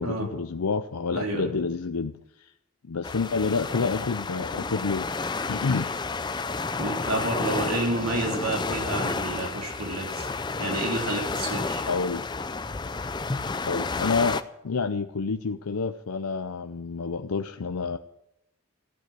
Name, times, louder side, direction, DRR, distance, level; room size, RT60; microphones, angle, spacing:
voice 1, 0.0-2.5 2.8-6.0 11.9-12.2 13.6-18.0, left 4 dB, 85° left, 8 dB, 0.6 m, -29 dB
voice 2, 1.1-1.6 6.8-10.3 10.6-11.8, right 2 dB, 75° right, 1 dB, 3.5 m, -29 dB
sound 1, 3.0-14.4, left 4 dB, 20° left, 0.5 m, -31 dB
15.0 x 9.4 x 9.1 m, 0.85 s
head